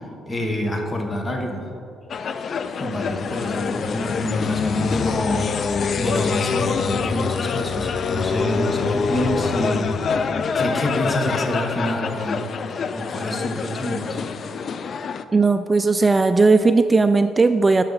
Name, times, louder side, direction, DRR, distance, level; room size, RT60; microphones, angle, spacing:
voice 1, 0.0-1.7 2.8-10.2 10.5-12.5 12.9-14.2, equal, 25° left, 2 dB, 1.3 m, -27 dB
sound 1, 2.1-15.2, left 5 dB, 55° left, 0.4 m, -25 dB
voice 2, 15.3-17.8, right 3 dB, 25° right, 9 dB, 0.3 m, -17 dB
11.5 x 6.6 x 4.0 m, 2.7 s
cardioid pair, 90°, 0 cm